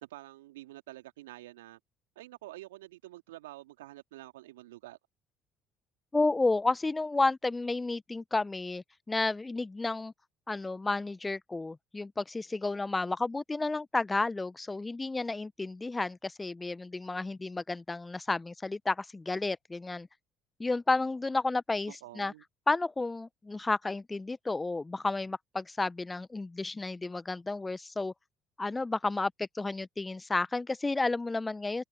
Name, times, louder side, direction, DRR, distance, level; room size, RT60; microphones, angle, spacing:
voice 1, 0.0-1.8 2.2-5.0 21.9-22.4, right 17 dB, 75° right, 2.6 m, -48 dB
voice 2, 6.1-10.1 10.5-20.1 20.6-22.3 22.7-28.1 28.6-31.8, left 3 dB, 20° left, 1.0 m, -31 dB
open air
figure-of-eight pair, 55°, 0 cm